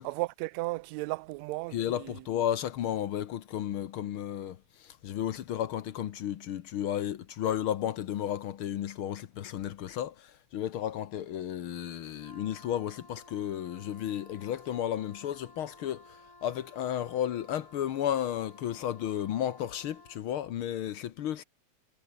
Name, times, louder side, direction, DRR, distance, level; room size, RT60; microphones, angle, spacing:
voice 1, 0.0-2.2, right 22 dB, 80° right, 1.6 m, -35 dB
voice 2, 1.7-21.4, left 10 dB, 65° left, 1.4 m, -33 dB
Wind instrument woodwind instrument, 12.2-20.3, left 2 dB, 15° left, 0.7 m, -55 dB
omnidirectional pair, 3.5 m